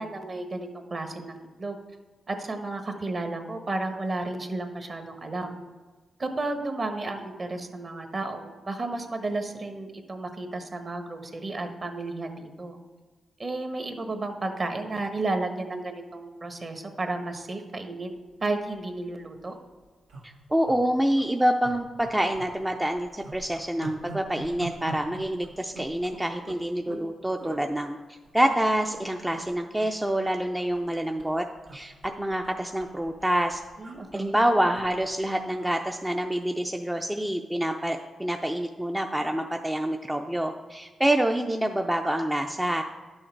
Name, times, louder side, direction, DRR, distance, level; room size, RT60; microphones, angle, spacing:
voice 1, 0.0-1.8 2.3-5.5 6.2-12.8 13.4-19.6 33.8-34.4, right 2 dB, 40° right, 5 dB, 1.1 m, -33 dB
sound 1, 18.6-18.8 19.1-19.2 19.4-19.6 20.1-20.8 21.1-21.3 21.6-22.5 22.8-27.1 27.4-27.6 28.2-29.0 29.3-29.5 29.8-30.9 31.2-35.7 36.1-36.3, right 3 dB, 90° right, 1.7 m, -43 dB
voice 2, 20.2-31.4 31.7-33.6 34.1-42.8, right 1 dB, 10° right, 3 dB, 0.4 m, -27 dB
10.5 x 6.4 x 4.5 m, 1.3 s
cardioid pair, 95°, 0 cm